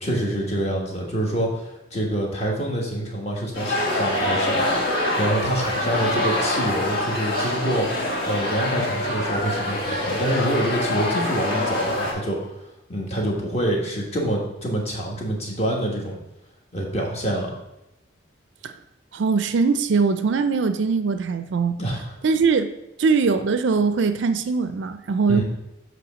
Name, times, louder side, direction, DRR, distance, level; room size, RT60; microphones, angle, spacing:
voice 1, 0.0-7.9 8.2-12.5 12.9-16.1 16.7-17.5 21.8-22.0 25.3-25.4, right 1 dB, 35° left, -2 dB, 1.4 m, -26 dB
sound 1, 3.5-12.1, left 1 dB, 50° left, 1.7 m, -25 dB
voice 2, 19.1-21.8 22.2-22.7 23.0-25.4, right 4 dB, 65° right, 9 dB, 0.4 m, -21 dB
7.8 x 3.1 x 6.2 m, 0.88 s
head